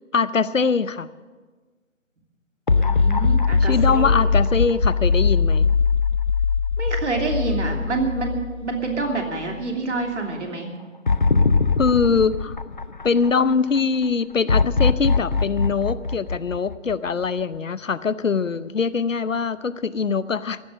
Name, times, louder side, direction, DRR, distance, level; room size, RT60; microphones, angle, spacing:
voice 1, 0.1-1.1 3.6-5.7 11.8-12.6 13.0-20.6, left 5 dB, 70° left, 17 dB, 0.8 m, -22 dB
sound 1, 2.7-9.0 9.4-9.5 11.1-13.5 14.5-17.2, left 4 dB, 40° left, 0.5 m, -21 dB
voice 2, 2.8-4.2 6.8-10.7, right 3 dB, 60° right, 2 dB, 3.0 m, -27 dB
14.5 x 12.0 x 7.7 m, 1.4 s
figure-of-eight pair, 145°, 40 cm